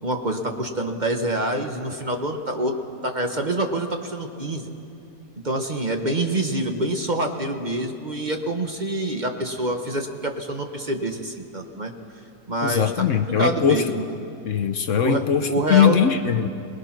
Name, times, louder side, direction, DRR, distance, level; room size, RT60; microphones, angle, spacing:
voice 1, 0.0-2.7 3.0-4.7 5.4-11.9 12.5-12.9 13.3-14.1 15.0-16.0, right 1 dB, 30° right, 4 dB, 1.2 m, -26 dB
voice 2, 12.6-14.0 14.4-16.5, left 8 dB, 60° left, 8 dB, 1.1 m, -21 dB
27.0 x 20.0 x 5.9 m, 2.8 s
omnidirectional pair, 1.6 m